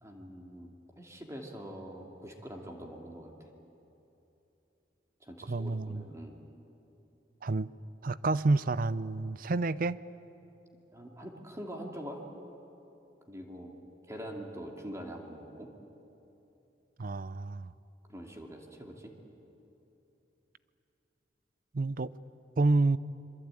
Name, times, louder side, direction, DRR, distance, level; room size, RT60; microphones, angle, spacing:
voice 1, 0.0-3.5 5.2-6.4 10.9-12.2 13.3-13.7 14.1-15.7 18.1-19.1, equal, 15° right, 1 dB, 2.6 m, -44 dB
voice 2, 5.4-6.1 7.4-7.7 8.0-10.0 17.0-17.7 21.7-22.1 22.6-23.0, right 3 dB, 50° right, 17 dB, 0.5 m, -29 dB
25.5 x 23.5 x 9.0 m, 3.0 s
head